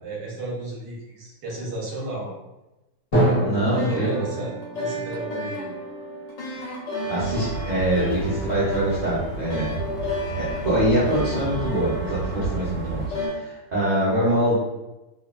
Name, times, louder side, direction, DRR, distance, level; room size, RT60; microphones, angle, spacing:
voice 1, 0.0-2.3 3.1-5.7, right 2 dB, 70° right, -3 dB, 1.3 m, -33 dB
Drum, 3.1-6.8, right 1 dB, 30° left, 0.8 m, -27 dB
voice 2, 3.4-4.2 6.5-6.7 7.1-9.7 10.3-14.6, right 1 dB, 45° right, -10 dB, 0.5 m, -24 dB
sound 1, 3.7-13.3, left 1 dB, 75° left, 1.5 m, -32 dB
sound 2, 7.2-13.1, right 2 dB, 50° left, 1.7 m, -32 dB
3.3 x 2.2 x 2.2 m, 1.0 s
omnidirectional pair, 2.0 m